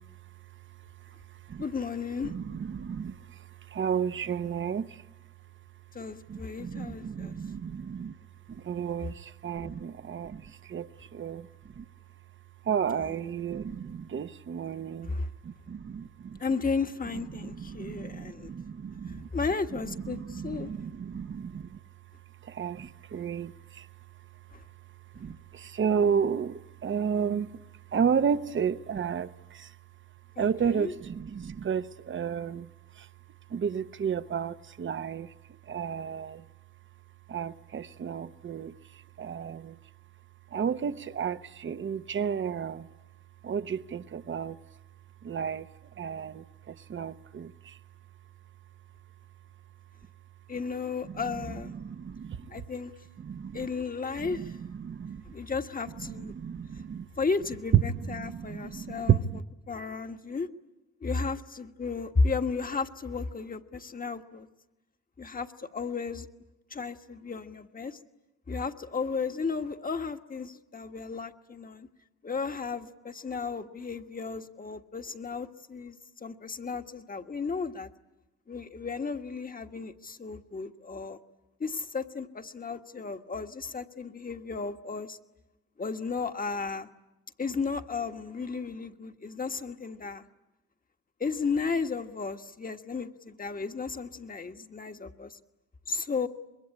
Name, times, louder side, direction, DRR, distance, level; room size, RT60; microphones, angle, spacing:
voice 1, 1.6-2.3 5.9-7.4 12.9-13.1 15.1-15.3 16.4-18.5 19.3-20.7 24.5-24.6 30.4-30.9 50.5-51.7 52.5-52.9 53.5-54.6 55.3-56.3 57.2-59.2 59.7-60.5 61.0-64.5 65.2-66.3 66.7-68.0 68.5-71.9 72.2-77.9 78.5-81.2 81.6-85.2 85.8-86.9 87.4-90.2 91.2-95.4 95.9-96.3, left 4 dB, 30° left, 1.4 m, -34 dB
voice 2, 2.2-3.4 3.7-5.0 6.3-8.1 8.5-11.5 11.8-11.9 12.6-15.1 15.4-16.4 17.3-19.3 20.0-21.7 22.4-23.9 25.1-27.5 27.9-29.7 30.4-32.7 33.0-33.1 33.5-35.3 35.7-36.4 37.3-38.7 39.2-39.8 40.5-42.9 43.4-44.6 45.2-45.7 46.0-47.8 51.1-51.2 51.7-52.4 53.2-53.7 54.2-55.2 56.0-57.1 57.9-59.4, right 7 dB, 40° right, 1.0 m, -32 dB
25.5 x 22.0 x 9.9 m
cardioid pair, 90°, 30 cm